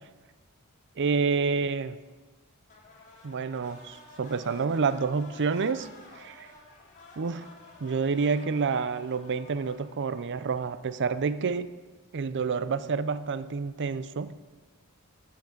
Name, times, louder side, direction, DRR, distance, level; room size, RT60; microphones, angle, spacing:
voice 1, 1.0-2.0 3.2-5.9 6.1-6.5 7.2-7.5 7.8-11.7 12.1-14.4, right 5 dB, 55° right, 14 dB, 0.5 m, -28 dB
sound 1, 2.7-11.1, left 3 dB, 35° left, 2.2 m, -52 dB
13.5 x 5.9 x 7.2 m, 1.3 s
head